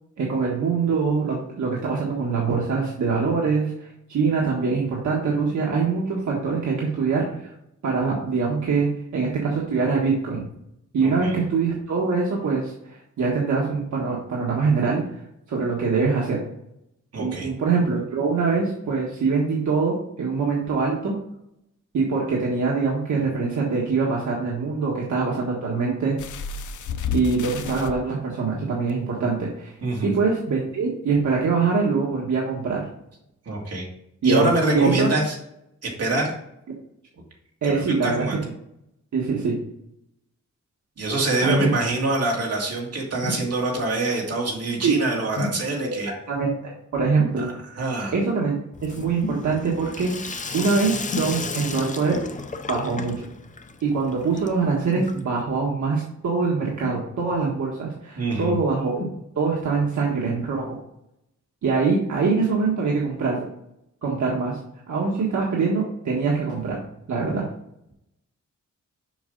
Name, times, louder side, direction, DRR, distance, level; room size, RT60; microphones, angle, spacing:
voice 1, 0.2-7.5 7.8-10.5 10.9-15.0 15.5-16.4 17.2-21.1 21.9-26.2 27.1-29.7 30.0-32.9 34.2-35.1 37.6-38.3 39.1-39.6 41.4-41.7 44.8-44.9 45.8-47.5 48.1-48.5 48.8-50.1 50.5-52.2 52.7-53.2 53.8-58.9 59.3-60.7 61.6-63.4 64.0-64.6 64.9-66.8 67.1-67.4, right 4 dB, 70° right, -3 dB, 1.5 m, -23 dB
voice 2, 11.0-11.3 17.1-17.5 29.8-30.1 33.5-33.9 34.2-35.4 35.8-36.3 37.6-38.4 41.0-46.1 47.4-47.5 47.8-48.1 58.2-58.5, right 2 dB, 55° right, -1 dB, 2.2 m, -25 dB
sound 1, 26.2-27.9 28.9-29.0 29.4-29.5, left 6 dB, 75° left, 0.7 m, -31 dB
sound 2, 41.5-41.8 43.2-43.5 45.3-45.7 47.2-47.4 49.2-49.5 51.1-51.4 52.9-53.2 54.9-55.1 56.8-57.4 58.9-59.2 60.0-60.1, left 2 dB, 55° left, 1.7 m, -29 dB
Sink (filling or washing), 48.7-55.5, left 4 dB, 25° left, 0.5 m, -35 dB
7.1 x 5.5 x 3.9 m, 0.79 s
wide cardioid pair, 155°, 30 cm